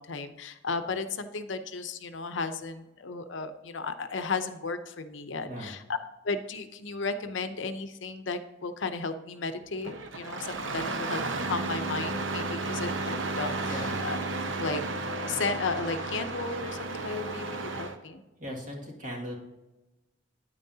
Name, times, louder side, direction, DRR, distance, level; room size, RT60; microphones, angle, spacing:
voice 1, 0.0-5.8 6.2-14.2 14.5-14.8 15.1-18.2, left 4 dB, 70° left, 9 dB, 0.7 m, -34 dB
Engine starting, 9.8-18.0, right 3 dB, 75° right, 0.8 m, -33 dB
voice 2, 18.4-19.3, equal, 45° right, -1 dB, 2.1 m, -38 dB
9.5 x 9.1 x 2.8 m, 1.0 s
head